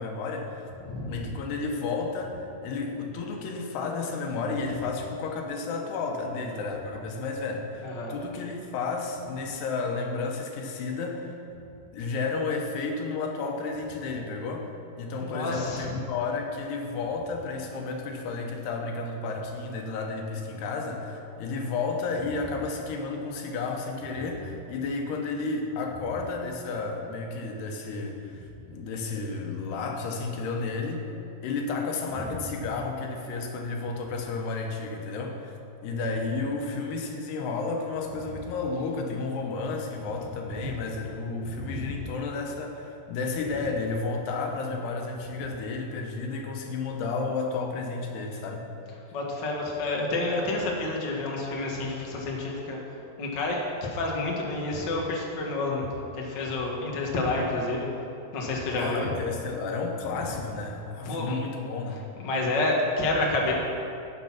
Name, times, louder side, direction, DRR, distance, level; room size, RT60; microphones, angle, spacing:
voice 1, 0.0-0.6 1.1-11.4 11.9-14.7 15.0-31.1 31.4-35.5 35.8-48.7 58.7-62.1, left 4 dB, 80° left, 2 dB, 3.2 m, -32 dB
voice 2, 0.8-1.3 7.8-8.1 15.2-16.0 40.5-40.7 41.4-42.0 49.1-52.8 53.2-55.9 56.1-57.9 58.3-59.1 61.0-61.4 62.2-63.5, left 2 dB, 55° left, -2 dB, 1.2 m, -29 dB
16.0 x 6.7 x 5.9 m, 2.7 s
omnidirectional pair, 4.8 m